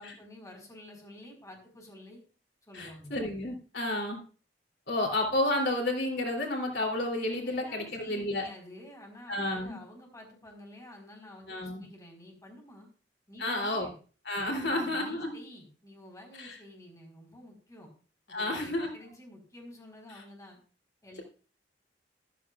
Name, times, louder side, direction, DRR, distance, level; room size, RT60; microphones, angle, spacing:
voice 1, 0.0-2.2 2.7-3.1 7.4-12.9 13.3-13.9 14.4-17.9 18.3-20.6 21.0-21.2, left 1 dB, 20° left, 1 dB, 4.4 m, -50 dB
voice 2, 2.7-4.2 4.9-8.4 9.3-9.8 11.5-11.8 13.4-13.9 14.2-15.4 16.4-16.6 18.3-18.9 20.1-20.2, left 1 dB, 70° left, 1 dB, 3.1 m, -31 dB
14.5 x 13.0 x 2.4 m, 0.38 s
head